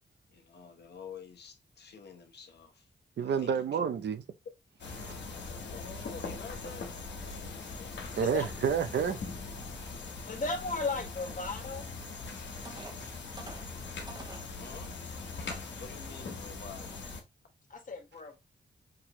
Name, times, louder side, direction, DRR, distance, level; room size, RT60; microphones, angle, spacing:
voice 1, 0.3-2.9 3.2-3.8 5.7-6.9 7.2-7.4 7.7-8.2 14.6-14.9 15.8-17.0, left 5 dB, 70° left, 1.0 m, -49 dB
voice 2, 3.2-4.2 5.0-5.1 8.2-9.2, right 7 dB, 75° right, 0.6 m, -29 dB
sound 1, 4.8-17.2, left 4 dB, 85° left, 1.3 m, -41 dB
voice 3, 8.1-8.5 10.3-11.9 17.7-18.4, left 3 dB, 45° left, 1.5 m, -35 dB
sound 2, 12.1-12.2 12.7-14.5 15.2-15.3 15.8-16.0, right 2 dB, 25° right, 1.0 m, -47 dB
6.0 x 2.8 x 3.0 m
cardioid pair, 90°, 18 cm